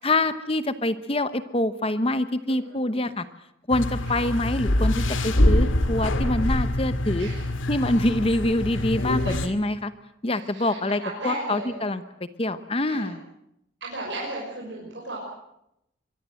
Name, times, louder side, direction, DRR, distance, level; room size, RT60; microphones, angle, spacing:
voice 1, 0.0-3.2 3.7-7.3 7.7-9.9 10.2-12.0 12.4-13.2, left 1 dB, 30° left, 12 dB, 0.9 m, -25 dB
voice 2, 2.5-2.9 4.0-4.2 7.2-7.4 9.2-9.5 10.3-11.7 12.9-13.1 13.8-15.2, right 2 dB, 60° right, -4 dB, 6.3 m, -36 dB
sound 1, 3.7-9.5, left 1 dB, 85° left, 2.2 m, -24 dB
23.5 x 23.5 x 7.8 m, 0.80 s
head